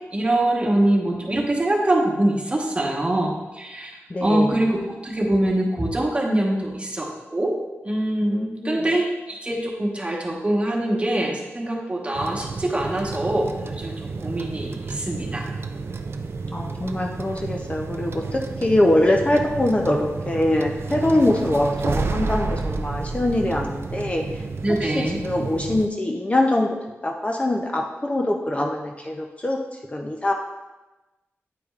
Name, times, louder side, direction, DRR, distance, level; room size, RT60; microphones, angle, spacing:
voice 1, 0.1-4.8 5.0-7.6 7.8-13.9 14.2-15.5 24.6-25.2, right 1 dB, 25° right, -1 dB, 1.2 m, -23 dB
voice 2, 4.1-4.5 8.3-8.9 16.5-24.2 24.8-26.7 27.0-29.6 29.9-30.3, left 1 dB, 25° left, 1 dB, 0.5 m, -23 dB
sound 1, 12.1-25.9, right 4 dB, 60° right, 0.4 m, -31 dB
9.3 x 4.9 x 2.4 m, 1.1 s
wide cardioid pair, 100°, 5 cm